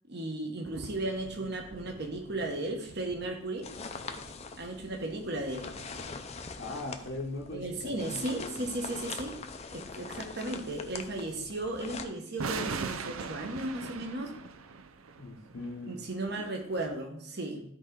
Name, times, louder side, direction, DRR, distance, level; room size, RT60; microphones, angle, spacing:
voice 1, 0.1-3.7 4.6-5.7 7.5-9.4 9.7-14.3 15.9-17.6, right 2 dB, 50° right, 2 dB, 1.4 m, -35 dB
sound 1, 0.6-6.9 12.4-17.0, right 5 dB, 90° right, 0.6 m, -43 dB
sound 2, 3.6-12.0, left 4 dB, 30° left, 0.6 m, -43 dB
voice 2, 6.6-8.7 15.2-16.0, left 2 dB, 60° left, -1 dB, 1.0 m, -40 dB
12.5 x 4.7 x 3.9 m, 0.70 s
head